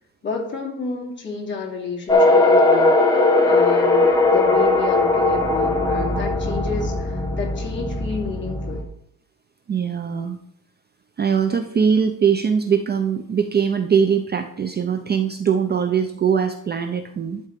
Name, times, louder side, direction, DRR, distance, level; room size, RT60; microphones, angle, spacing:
voice 1, 0.2-8.8, left 4 dB, 30° left, -2 dB, 2.7 m, -30 dB
sound 1, 2.1-8.8, left 2 dB, 10° left, 1.5 m, -18 dB
voice 2, 9.7-10.4 11.2-17.4, right 7 dB, 25° right, 7 dB, 0.5 m, -21 dB
12.0 x 4.2 x 6.7 m, 0.72 s
cardioid pair, 150°, 39 cm